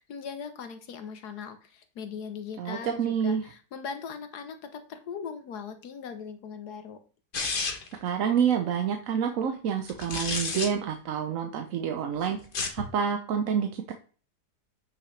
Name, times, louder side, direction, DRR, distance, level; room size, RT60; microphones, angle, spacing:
voice 1, 0.0-7.0, left 6 dB, 70° left, 8 dB, 1.5 m, -39 dB
voice 2, 2.6-3.4 8.0-12.4 12.7-13.9, right 7 dB, 60° right, 6 dB, 1.0 m, -28 dB
sound 1, 7.3-8.0 9.9-10.7 12.4-12.8, left 4 dB, 35° left, 1.0 m, -31 dB
8.6 x 6.0 x 3.2 m, 0.39 s
omnidirectional pair, 1.8 m